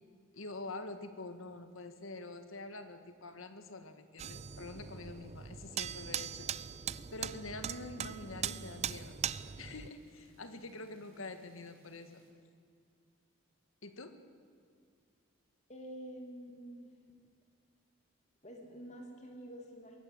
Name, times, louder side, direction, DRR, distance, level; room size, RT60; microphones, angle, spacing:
voice 1, 0.3-6.5 7.1-9.1 9.6-12.2 13.8-14.2, left 2 dB, 80° left, 9 dB, 1.8 m, -46 dB
sound 1, 4.2-9.9, right 8 dB, 30° right, 0.4 m, -40 dB
sound 2, 6.8-12.3, right 1 dB, 80° right, 6.0 m, -67 dB
voice 2, 15.7-16.9 18.4-20.0, right 1 dB, 35° left, 2 dB, 2.9 m, -48 dB
22.5 x 17.5 x 7.8 m, 2.1 s
head